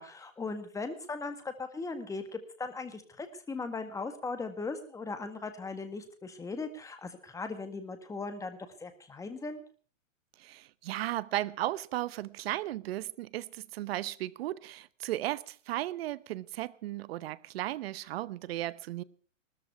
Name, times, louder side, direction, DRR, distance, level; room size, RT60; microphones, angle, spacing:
voice 1, 0.0-9.6, left 3 dB, 10° left, 1.7 m, -38 dB
voice 2, 10.4-19.0, right 15 dB, 50° right, 0.9 m, -35 dB
19.0 x 13.5 x 4.6 m
hypercardioid pair, 140°, 39 cm